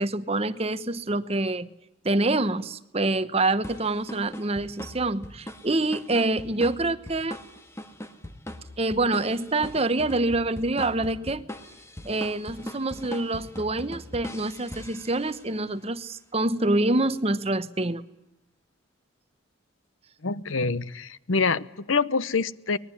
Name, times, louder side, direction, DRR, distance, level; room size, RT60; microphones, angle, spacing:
voice 1, 0.0-1.7 2.0-7.4 8.8-11.5 12.1-18.0, right 2 dB, 30° right, 13 dB, 1.0 m, -26 dB
sound 1, 3.6-15.6, left 1 dB, 15° left, 1.8 m, -41 dB
voice 2, 20.2-22.8, left 4 dB, 80° left, 18 dB, 0.9 m, -26 dB
25.0 x 20.5 x 9.9 m, 0.88 s
head